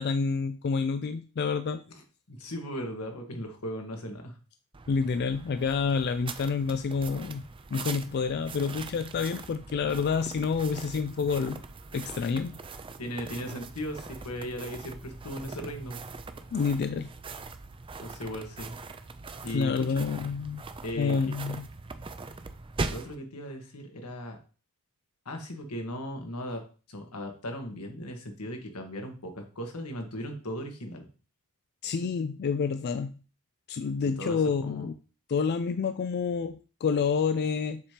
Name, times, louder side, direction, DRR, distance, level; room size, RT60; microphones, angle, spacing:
voice 1, 0.0-1.8 4.9-7.4 7.7-11.6 11.9-12.6 16.5-17.1 19.5-20.6 21.0-21.7 31.8-33.1 33.7-34.9 35.3-37.8, left 5 dB, 45° left, 10 dB, 0.3 m, -28 dB
voice 2, 2.3-4.4 13.0-16.0 18.0-18.7 19.4-20.1 20.8-21.2 22.9-24.4 25.2-26.6 26.9-31.0 34.2-34.9, equal, 85° left, 3 dB, 1.6 m, -37 dB
sound 1, 4.7-23.2, right 3 dB, 25° right, 0.4 m, -41 dB
7.2 x 3.0 x 5.0 m, 0.36 s
head